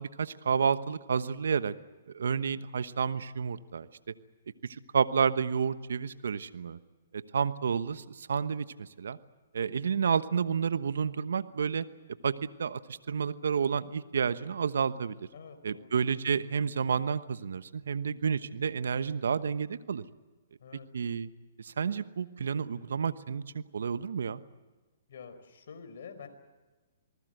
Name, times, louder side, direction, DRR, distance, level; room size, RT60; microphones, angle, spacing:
voice 1, 0.0-1.7 2.1-3.9 4.6-6.8 7.1-9.2 9.5-11.8 12.2-12.8 13.1-15.1 15.6-20.0 20.9-21.3 21.6-24.4, right 6 dB, 75° right, 14 dB, 1.1 m, -30 dB
voice 2, 15.3-16.0 20.6-20.9 25.1-26.3, left 6 dB, 65° left, 7 dB, 4.6 m, -47 dB
27.5 x 20.0 x 8.0 m, 1.3 s
hypercardioid pair, 135°, 0 cm